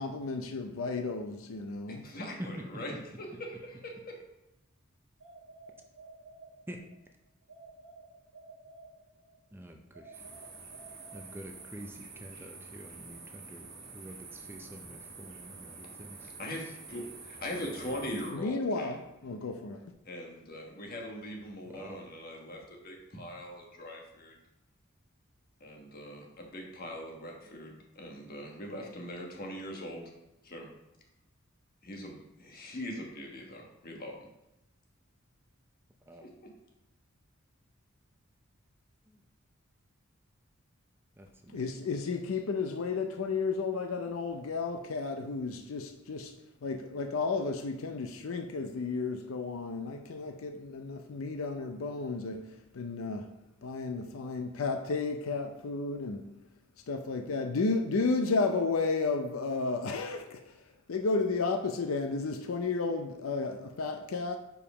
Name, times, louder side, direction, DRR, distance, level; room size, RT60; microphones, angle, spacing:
voice 1, 0.0-2.1 18.3-19.8 41.5-46.3 46.6-52.4 52.7-53.3 53.6-56.2 56.9-60.4 60.9-64.4, left 4 dB, 75° left, 0.5 m, -32 dB
voice 2, 1.9-2.9 3.2-4.2 16.4-18.9 20.0-24.3 25.6-30.0 30.4-30.7 31.8-34.3 36.2-36.3, left 1 dB, 45° left, 1.4 m, -41 dB
voice 3, 2.4-2.8 6.7-6.8 9.5-10.3 11.1-16.3 16.6-16.7 21.6-22.0 31.9-32.1 36.1-36.3 39.1-39.2 41.2-41.7, equal, 10° right, 0.5 m, -47 dB
sound 1, 5.2-7.0 7.5-9.4 9.9-11.8, right 3 dB, 65° right, 1.2 m, -53 dB
sound 2, 10.1-18.3, right 4 dB, 50° right, 1.4 m, -48 dB
5.3 x 4.8 x 4.9 m
head